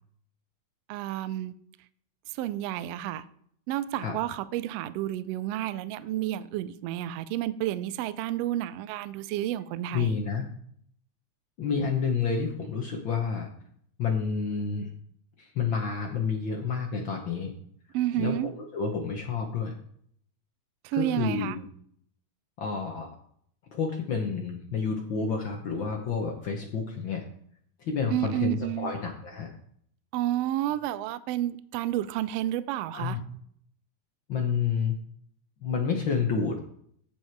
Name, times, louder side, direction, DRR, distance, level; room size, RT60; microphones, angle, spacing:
voice 1, 0.9-1.5 2.3-3.2 3.7-10.2 17.9-18.5 20.8-21.6 28.1-28.9 30.1-33.2, right 13 dB, 85° right, 15 dB, 1.4 m, -30 dB
voice 2, 9.9-10.5 11.6-13.5 14.0-14.9 15.4-17.5 18.2-19.7 20.9-21.6 22.6-23.1 23.7-27.2 27.8-29.5 32.9-33.2 34.3-34.9 35.6-36.6, left 5 dB, 60° left, 2 dB, 1.3 m, -29 dB
9.7 x 7.4 x 4.6 m, 0.65 s
omnidirectional pair, 3.4 m